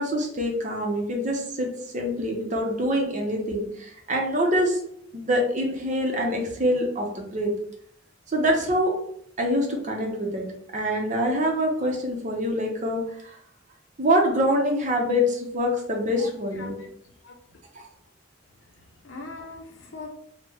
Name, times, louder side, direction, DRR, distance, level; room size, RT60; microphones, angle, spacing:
voice 1, 0.0-4.8 5.1-7.5 8.3-8.9 9.4-13.4 14.0-16.7 17.7-17.8, equal, 40° right, 0 dB, 0.6 m, -25 dB
voice 2, 16.5-16.9 17.2-17.3 18.7-20.1, left 3 dB, 80° left, 3 dB, 0.6 m, -41 dB
3.2 x 2.1 x 3.6 m, 0.68 s
head